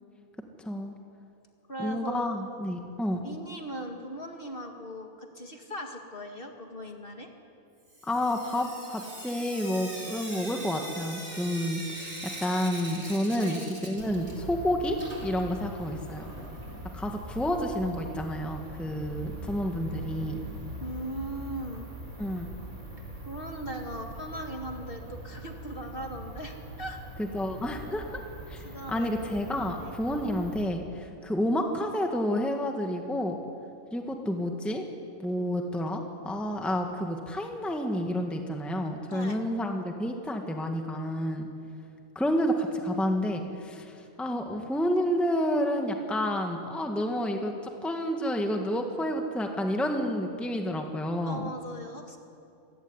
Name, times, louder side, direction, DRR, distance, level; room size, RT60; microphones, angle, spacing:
voice 1, 0.6-1.0 1.8-3.2 8.0-13.6 13.8-16.2 16.9-20.4 22.2-22.5 27.2-28.2 28.5-33.4 33.9-34.8 35.2-41.4 42.1-51.5, equal, ahead, 3 dB, 1.6 m, -30 dB
voice 2, 1.7-2.4 3.2-7.3 13.4-13.6 20.8-21.9 23.2-27.0 28.6-29.3 29.8-30.0 39.1-39.4 51.2-52.2, equal, 40° left, 3 dB, 2.3 m, -39 dB
Sink (filling or washing) / Drip, 7.9-14.6 14.9-16.8 18.0-18.1 18.4-18.5 18.7-18.8 21.7-21.8 22.4-22.5 23.0-23.1 23.7-23.8 24.4-24.5 25.4-25.5, right 1 dB, 50° right, 4.5 m, -42 dB
sound 1, 14.0-30.6, right 1 dB, 35° right, 4.0 m, -42 dB
26.5 x 16.0 x 9.9 m, 2.6 s
omnidirectional pair, 1.5 m